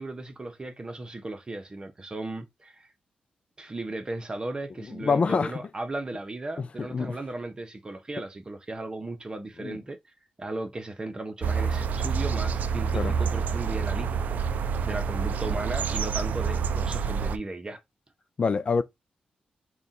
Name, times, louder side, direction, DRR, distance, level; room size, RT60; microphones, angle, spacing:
voice 1, 0.0-2.9 3.6-10.0 10.4-17.8, right 2 dB, 30° right, 0.8 m, -36 dB
voice 2, 5.0-5.6 6.6-7.2 9.6-9.8 12.9-13.1 18.4-18.8, left 5 dB, 45° left, 0.4 m, -26 dB
sound 1, 11.4-17.4, right 6 dB, 70° right, 0.3 m, -27 dB
3.4 x 2.3 x 4.1 m
cardioid pair, 75°, 3 cm